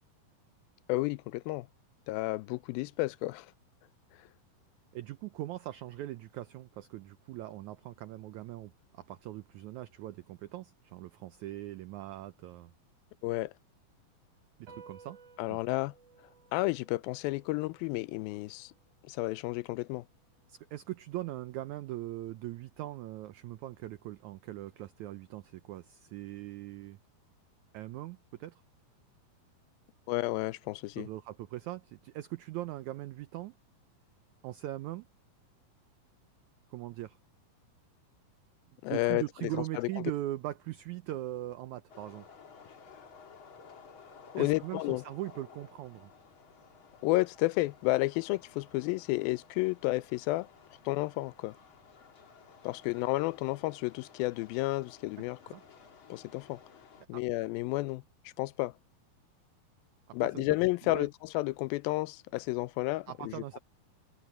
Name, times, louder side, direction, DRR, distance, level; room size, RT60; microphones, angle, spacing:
voice 1, 0.9-1.7 2.1-3.5 13.2-13.5 15.4-15.9 16.5-18.7 19.1-20.0 30.1-31.1 38.8-39.5 39.8-39.9 44.3-45.0 47.0-50.5 50.9-51.5 52.6-55.4 56.1-56.6 57.1-58.0 58.4-58.7 60.1-63.3, left 20 dB, 85° left, 2.4 m, -31 dB
voice 2, 4.9-12.7 14.6-15.2 15.5-15.6 20.5-27.0 27.7-28.6 31.0-33.5 34.4-35.1 36.7-37.2 38.9-42.3 44.4-46.1 55.4-55.6 57.1-57.2 60.1-60.5 60.8-61.1 63.1-63.6, right 15 dB, 85° right, 1.7 m, -40 dB
sound 1, 14.7-21.4, right 5 dB, 70° right, 6.9 m, -59 dB
sound 2, 41.9-57.1, left 6 dB, 40° left, 2.4 m, -55 dB
omnidirectional pair, 4.2 m